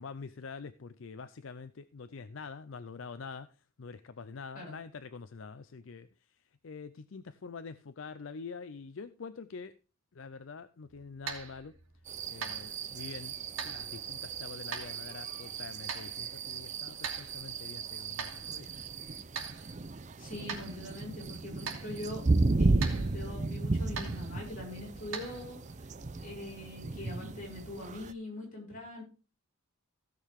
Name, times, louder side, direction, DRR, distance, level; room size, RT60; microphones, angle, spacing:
voice 1, 0.0-3.5 3.8-9.7 10.1-11.7 12.3-13.3 13.6-18.7, left 5 dB, 65° left, 13 dB, 0.5 m, -45 dB
sound 1, 10.8-25.5, right 5 dB, 80° right, 2.7 m, -45 dB
sound 2, 12.1-28.1, right 3 dB, 35° right, 0.6 m, -34 dB
voice 2, 20.2-22.2 22.6-25.9 26.2-29.0, left 1 dB, 40° left, -3 dB, 6.3 m, -43 dB
16.0 x 6.6 x 3.5 m, 0.34 s
head